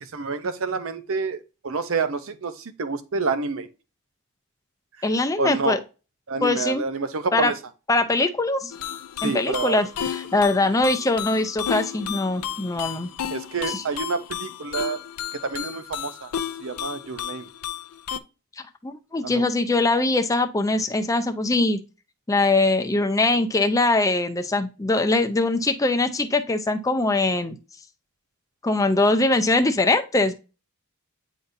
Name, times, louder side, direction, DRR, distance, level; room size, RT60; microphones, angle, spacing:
voice 1, 0.1-3.7 5.4-5.8 6.3-7.5 9.2-9.9 10.3-10.4 13.3-15.0 15.4-16.3 16.6-17.5 19.2-19.4, right 4 dB, 60° right, 0.7 m, -28 dB
voice 2, 5.0-5.8 6.4-6.8 7.3-7.5 7.9-8.7 9.2-13.1 13.7-13.8 18.8-21.8 22.3-27.6 28.6-30.3, left 2 dB, 15° left, 0.5 m, -22 dB
sound 1, 8.7-18.2, left 9 dB, 80° left, 0.5 m, -33 dB
9.1 x 3.9 x 2.6 m
head